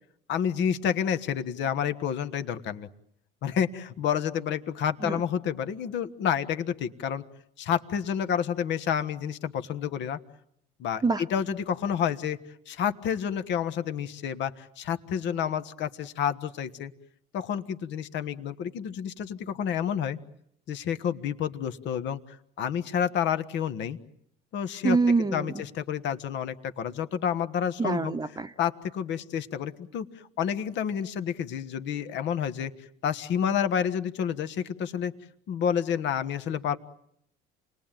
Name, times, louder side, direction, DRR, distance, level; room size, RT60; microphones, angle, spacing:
voice 1, 0.3-2.9 3.4-7.2 7.6-10.2 10.8-12.4 12.7-16.9 17.3-20.2 20.7-22.2 22.6-24.0 24.5-25.0 25.3-28.1 28.6-30.1 30.4-32.7 33.0-35.1 35.5-36.8, left 8 dB, 60° left, 10 dB, 1.5 m, -29 dB
voice 2, 24.8-25.6 27.8-28.5, right 4 dB, 20° right, 9 dB, 1.0 m, -25 dB
28.0 x 19.5 x 9.1 m, 0.73 s
supercardioid pair, 95°, 21 cm